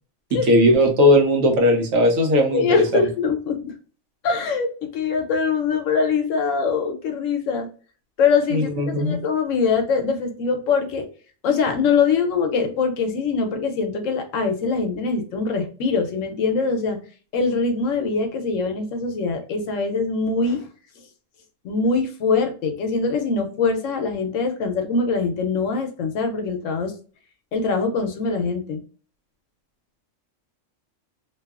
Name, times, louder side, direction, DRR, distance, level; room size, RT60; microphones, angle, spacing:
voice 1, 0.3-2.8 8.5-9.2, left 1 dB, 85° right, 4 dB, 1.1 m, -18 dB
voice 2, 2.5-3.7 4.2-7.7 8.2-11.1 11.4-17.0 17.3-20.7 21.6-26.9 27.5-28.8, left 4 dB, 75° left, 5 dB, 0.9 m, -23 dB
2.7 x 2.3 x 2.3 m, 0.38 s
omnidirectional pair, 1.4 m